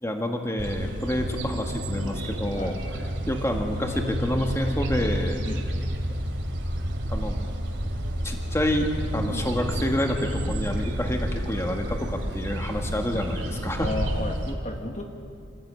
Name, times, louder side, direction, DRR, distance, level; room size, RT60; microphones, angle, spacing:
voice 1, 0.0-2.7 3.3-5.4 7.1-7.3 8.2-13.9, equal, 15° left, 3 dB, 1.8 m, -28 dB
sound 1, 0.6-14.5, equal, 65° right, 2.6 m, -30 dB
voice 2, 13.8-15.0, left 2 dB, 35° left, 3 dB, 1.4 m, -33 dB
27.0 x 15.0 x 9.0 m, 2.4 s
head